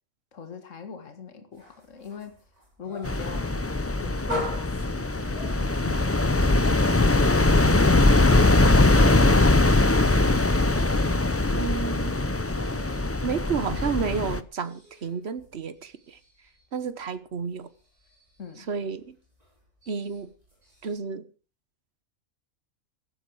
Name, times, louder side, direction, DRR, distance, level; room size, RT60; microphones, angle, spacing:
voice 1, 0.3-2.3 2.8-6.6 18.4-18.7, left 5 dB, 65° left, 2.1 m, -42 dB
sound 1, 1.5-14.0 14.3-20.9, left 1 dB, 30° right, 5.9 m, -43 dB
sound 2, 3.0-14.4, left 2 dB, 15° left, 0.5 m, -21 dB
voice 2, 11.5-12.2 13.2-16.2 16.7-17.7 18.6-19.2 19.9-20.3 20.8-21.3, right 6 dB, 50° right, 1.4 m, -31 dB
16.0 x 12.5 x 4.8 m
omnidirectional pair, 1.4 m